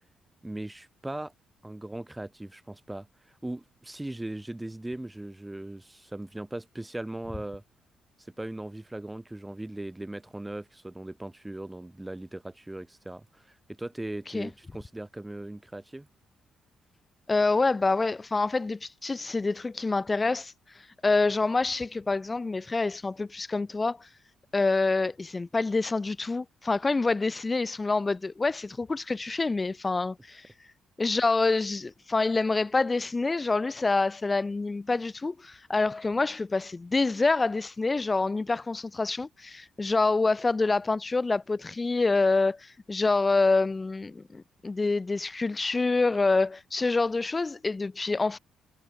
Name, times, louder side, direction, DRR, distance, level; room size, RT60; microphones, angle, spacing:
voice 1, 0.4-1.3 1.6-7.6 8.4-16.1, right 1 dB, 10° right, 4.6 m, -39 dB
voice 2, 17.3-20.5 21.0-24.1 24.5-30.5 31.0-48.4, left 3 dB, 25° left, 0.8 m, -26 dB
cardioid pair, 90°, 0 cm